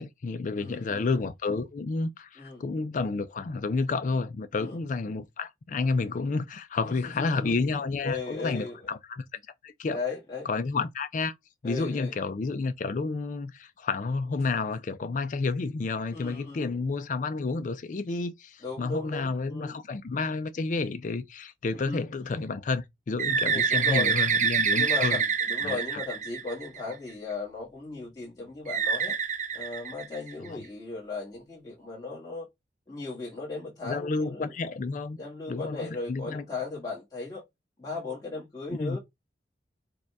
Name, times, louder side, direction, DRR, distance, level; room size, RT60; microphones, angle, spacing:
voice 1, 0.0-10.0 10.5-11.3 11.6-25.2 25.6-25.8 30.5-30.6 33.8-35.2 35.5-36.4 38.7-39.0, left 4 dB, 45° left, 0.4 m, -30 dB
voice 2, 0.5-1.1 2.4-2.6 4.6-4.8 6.9-7.5 8.0-8.8 9.9-10.5 11.6-12.1 16.1-16.7 18.6-19.8 21.7-22.0 23.4-24.2 24.7-29.1 29.5-32.5 32.9-34.5 35.2-37.4 37.8-39.0, left 3 dB, 20° left, 1.5 m, -37 dB
Bird, 23.2-26.9 28.7-30.5, right 6 dB, 45° right, 0.7 m, -26 dB
4.8 x 2.3 x 4.6 m
head